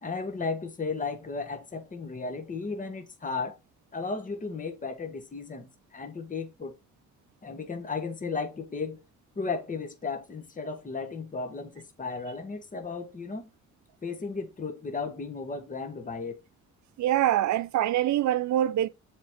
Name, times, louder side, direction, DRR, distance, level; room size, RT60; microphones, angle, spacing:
voice 1, 0.0-3.5 3.9-6.7 7.4-9.0 9.3-13.5 14.0-16.4, left 4 dB, 25° left, 1.4 m, -35 dB
voice 2, 17.0-18.9, right 12 dB, 70° right, 0.6 m, -24 dB
7.1 x 3.8 x 4.5 m
cardioid pair, 90°, 30 cm